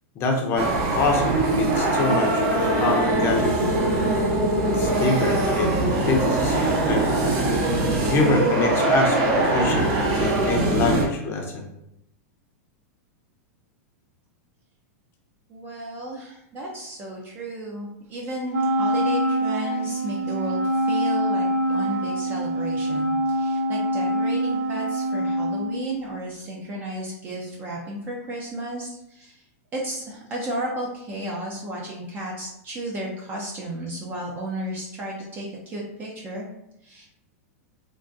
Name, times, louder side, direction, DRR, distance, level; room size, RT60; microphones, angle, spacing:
voice 1, 0.2-3.7 4.7-7.3 8.1-11.7, left 3 dB, 30° left, 2 dB, 0.6 m, -25 dB
sound 1, 0.6-11.0, right 2 dB, 45° right, 0.9 m, -22 dB
voice 2, 15.5-29.4 29.7-36.5 36.8-37.1, right 1 dB, 25° right, -3 dB, 0.5 m, -33 dB
Wind instrument woodwind instrument, 18.5-26.2, right 1 dB, 80° right, 0.5 m, -25 dB
3.6 x 2.5 x 2.6 m, 0.81 s
supercardioid pair, 150°, 8 cm